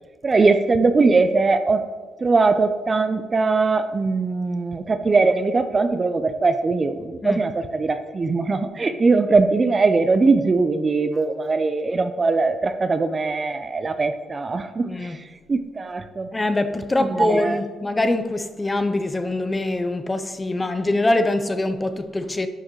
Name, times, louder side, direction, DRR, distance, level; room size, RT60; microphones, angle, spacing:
voice 1, 0.2-1.8 2.2-16.3 17.0-17.6, right 3 dB, 30° right, 0.6 m, -21 dB
voice 2, 14.8-15.2 16.3-22.5, left 2 dB, 20° left, 0.6 m, -23 dB
11.5 x 6.3 x 3.1 m
cardioid pair, 90°, 0 cm